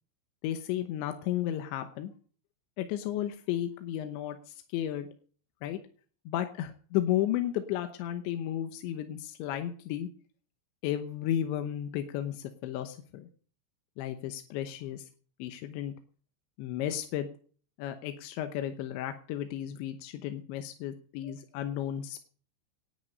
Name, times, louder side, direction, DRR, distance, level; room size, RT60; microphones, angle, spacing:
voice 1, 0.4-2.1 2.8-5.1 5.6-5.8 6.3-10.1 10.8-13.3 14.0-15.0 15.4-15.9 16.6-17.3 17.8-22.2, left 11 dB, 75° left, 8 dB, 3.0 m, -33 dB
18.0 x 10.0 x 5.3 m, 0.43 s
omnidirectional pair, 5.9 m